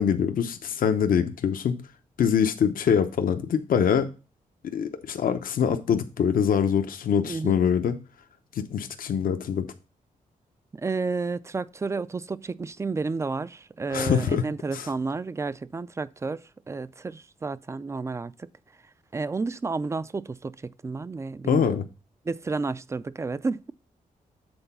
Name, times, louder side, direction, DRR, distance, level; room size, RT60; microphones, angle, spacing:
voice 1, 0.0-1.7 2.2-4.1 4.7-8.0 8.6-9.7 13.9-14.4 14.7-14.9 21.4-21.8, left 7 dB, 75° left, 0.7 m, -24 dB
voice 2, 7.3-7.6 10.7-18.5 19.1-21.8 22.3-23.7, right 4 dB, 20° right, 0.3 m, -31 dB
7.9 x 3.9 x 5.5 m
cardioid pair, 105°, 15 cm